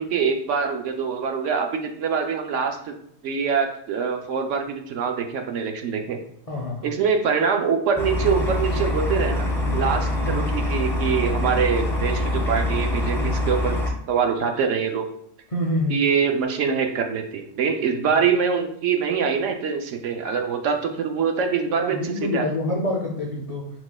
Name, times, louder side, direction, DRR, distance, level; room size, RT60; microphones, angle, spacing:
voice 1, 0.0-2.9 3.2-6.2 6.8-13.8 14.1-15.1 15.9-22.4, right 6 dB, 70° right, 4 dB, 0.9 m, -24 dB
voice 2, 6.5-6.9 10.2-10.4 15.5-16.0 18.0-18.2 21.8-23.7, left 1 dB, 50° left, -2 dB, 0.4 m, -27 dB
sound 1, 8.0-13.9, left 1 dB, 5° left, 0.6 m, -24 dB
4.5 x 4.1 x 2.2 m, 0.68 s
omnidirectional pair, 1.4 m